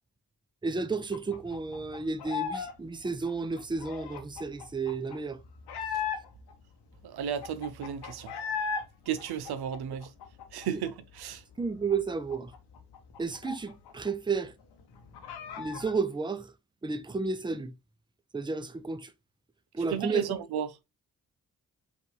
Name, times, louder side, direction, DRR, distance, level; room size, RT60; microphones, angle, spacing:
voice 1, 0.6-5.4 10.7-10.8 11.6-12.5 13.2-14.5 15.6-16.5 16.8-17.7 18.3-19.1 19.7-20.4, right 4 dB, 10° right, 0.6 m, -32 dB
sound 1, 1.1-2.7 3.0-6.5 6.9-7.0 7.2-8.8 9.2-10.9 11.2-11.3 11.6-14.1 14.4-14.5 14.8-16.0, left 6 dB, 80° left, 0.9 m, -37 dB
voice 2, 7.0-8.3 9.1-10.1 10.5-11.4 19.9-20.7, right 8 dB, 70° right, 0.6 m, -34 dB
5.0 x 2.6 x 3.0 m
supercardioid pair, 40°, 39 cm